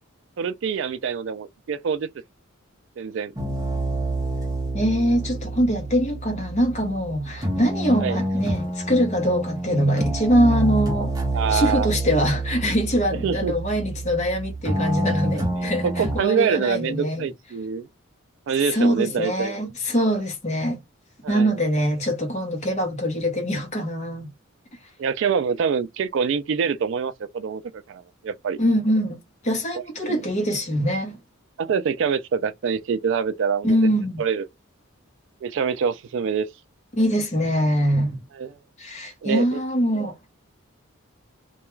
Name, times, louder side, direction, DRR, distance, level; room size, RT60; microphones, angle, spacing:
voice 1, 0.4-2.1 3.0-3.3 8.0-8.2 11.3-11.9 13.2-13.5 15.6-17.9 18.5-19.6 21.2-21.5 25.0-28.6 30.0-30.3 31.6-33.8 34.2-34.5 35.4-36.5 38.3-38.5 39.2-39.6, right 6 dB, 60° right, 0.3 m, -25 dB
sound 1, 3.4-16.2, right 1 dB, 15° right, 0.6 m, -27 dB
voice 2, 4.7-11.1 11.5-17.2 18.7-20.8 21.3-24.3 28.6-29.2 29.4-31.2 33.6-34.2 36.9-38.2 38.8-40.2, equal, 35° left, 0.8 m, -23 dB
2.3 x 2.2 x 3.0 m
head